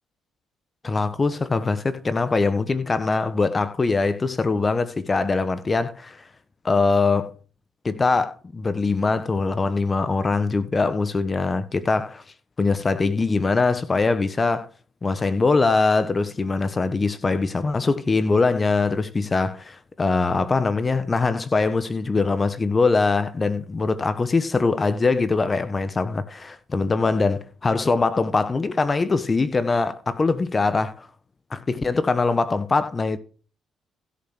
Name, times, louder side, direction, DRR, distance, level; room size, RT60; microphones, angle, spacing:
voice 1, 0.8-6.2 6.6-7.3 7.8-12.2 12.6-14.7 15.0-31.1 31.5-33.2, left 3 dB, 30° left, 1.1 m, -22 dB
11.5 x 7.2 x 6.1 m
cardioid pair, 90°, 0 cm